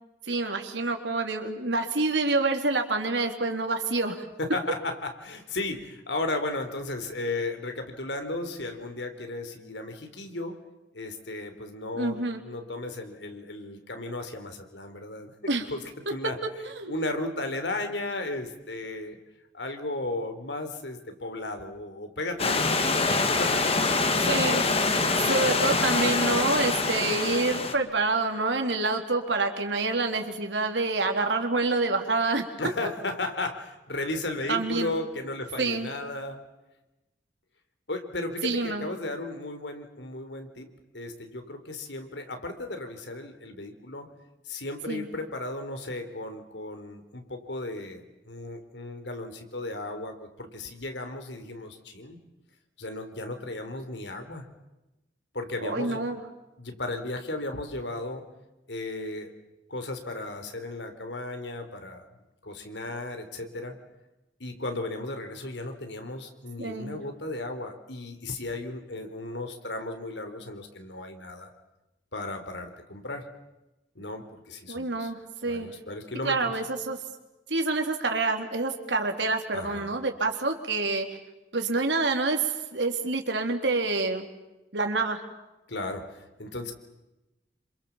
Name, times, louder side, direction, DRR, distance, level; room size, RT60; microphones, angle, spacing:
voice 1, 0.3-4.2 11.9-12.4 15.5-15.7 16.7-16.9 24.2-24.6 25.3-32.5 34.5-34.9 35.6-35.9 38.4-38.9 44.9-45.1 55.6-56.2 66.6-67.0 74.7-75.7 76.2-77.0 77.5-81.1 81.5-82.4 82.7-84.3 84.7-85.2, right 3 dB, 85° right, 4 dB, 3.7 m, -27 dB
voice 2, 4.4-10.6 10.9-15.3 15.7-15.8 16.1-16.4 16.9-19.2 19.5-22.9 23.4-24.9 32.6-36.4 37.9-40.7 40.9-44.1 44.4-52.2 52.8-54.5 55.3-56.0 56.6-58.2 58.7-59.3 59.7-62.1 62.4-63.8 64.4-71.5 72.1-73.3 74.0-75.1 75.5-76.6 79.5-79.9 85.7-86.7, left 2 dB, 85° left, 7 dB, 3.9 m, -35 dB
Stream / Liquid, 22.4-27.7, left 3 dB, 35° left, 2.4 m, -25 dB
28.0 x 26.5 x 7.4 m, 1.0 s
head